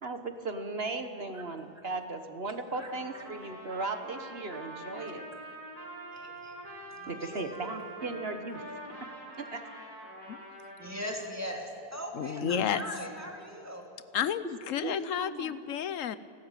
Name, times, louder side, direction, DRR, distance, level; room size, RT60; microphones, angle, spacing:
voice 1, 0.0-5.2 7.1-8.6 9.2-9.6 12.4-12.7 14.8-15.5, right 3 dB, 35° right, 8 dB, 1.3 m, -37 dB
Trumpet, 2.8-11.3, right 1 dB, 55° right, 5.2 m, -45 dB
voice 2, 6.1-6.6 6.9-7.9 10.8-13.9, equal, 10° right, 1 dB, 2.8 m, -40 dB
voice 3, 12.1-12.9 14.1-16.2, left 9 dB, 60° left, 15 dB, 0.9 m, -31 dB
30.0 x 12.5 x 9.0 m, 2.3 s
omnidirectional pair, 1.9 m